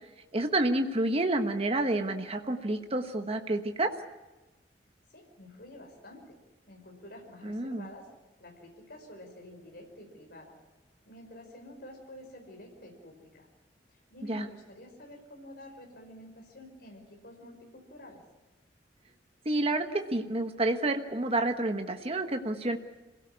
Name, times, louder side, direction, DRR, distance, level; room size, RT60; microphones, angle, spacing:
voice 1, 0.3-3.9 7.4-7.9 14.3-14.5 19.4-22.8, right 2 dB, 35° right, 5 dB, 1.3 m, -29 dB
voice 2, 5.1-6.4 6.7-8.1 8.4-10.6 11.0-13.5 13.9-18.2, left 1 dB, 65° left, 2 dB, 5.1 m, -49 dB
26.5 x 17.0 x 9.7 m, 1.1 s
head